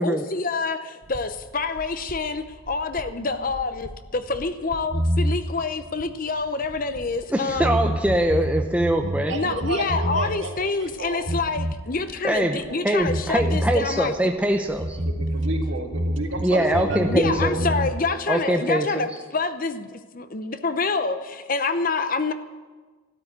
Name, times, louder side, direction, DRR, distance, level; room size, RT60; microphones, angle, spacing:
voice 1, 0.0-7.7 9.3-14.1 17.0-22.3, left 4 dB, 40° left, 10 dB, 0.7 m, -27 dB
sound 1, 1.0-7.2 7.5-10.6 10.9-12.7 13.0-16.5 16.7-17.9, right 1 dB, 40° right, 1.1 m, -28 dB
voice 2, 7.3-9.3 12.2-12.6 12.8-15.0 16.4-17.6 18.3-19.1, right 1 dB, 5° right, 3 dB, 0.7 m, -23 dB
voice 3, 9.3-11.2 12.3-12.9 15.0-17.8, right 1 dB, 60° right, 2 dB, 2.2 m, -32 dB
13.0 x 12.5 x 8.1 m, 1.3 s
head